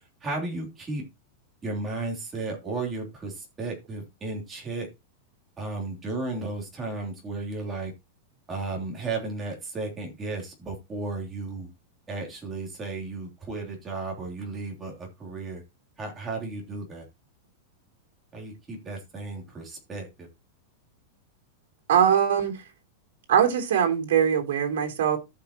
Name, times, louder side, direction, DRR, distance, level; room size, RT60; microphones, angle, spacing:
voice 1, 0.2-1.0 1.6-4.9 5.6-7.9 8.5-11.7 12.1-15.6 16.0-17.1 18.3-20.3, right 3 dB, 15° right, 3.1 m, -34 dB
voice 2, 21.9-22.6 23.3-25.2, right 8 dB, 70° right, 3.6 m, -22 dB
14.0 x 5.8 x 2.9 m
supercardioid pair, 165°, 0 cm